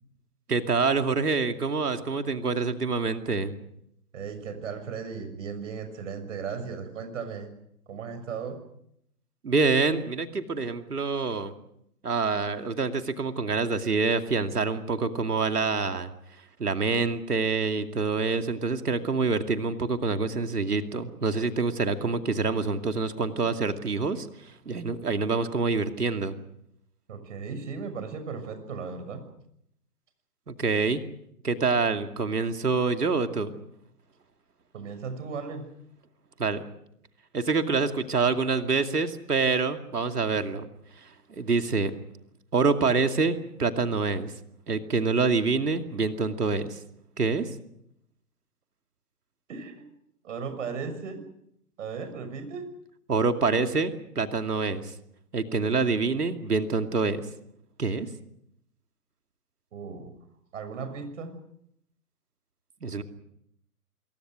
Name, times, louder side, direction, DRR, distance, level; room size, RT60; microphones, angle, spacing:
voice 1, 0.5-3.5 9.4-11.5 12.0-16.1 16.6-24.3 24.7-26.4 30.5-31.0 31.4-33.6 36.4-36.6 37.3-40.7 41.3-41.9 42.5-44.3 44.7-46.8 47.2-47.4 53.1-54.9 55.3-57.2 57.8-58.1 62.8-63.0, right 4 dB, 80° right, 7 dB, 2.6 m, -26 dB
voice 2, 4.1-7.5 7.9-8.6 27.1-29.2 34.7-35.6 49.5-49.9 50.2-51.2 51.8-52.7 59.7-60.1 60.5-61.3, right 5 dB, 55° right, 8 dB, 6.6 m, -36 dB
26.5 x 22.5 x 6.4 m, 0.74 s
figure-of-eight pair, 130°, 46 cm